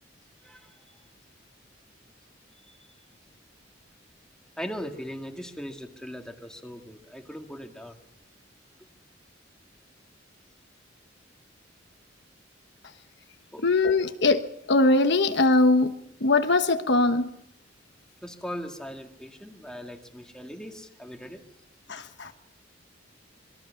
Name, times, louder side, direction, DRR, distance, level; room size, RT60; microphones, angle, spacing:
voice 1, 0.4-0.8 2.6-2.8 4.6-8.0 13.5-13.6 18.2-21.4, equal, 5° left, 2.1 m, -39 dB
voice 2, 13.6-15.9 16.2-17.3 21.9-22.3, left 2 dB, 65° left, 1.2 m, -21 dB
27.0 x 21.5 x 5.8 m
head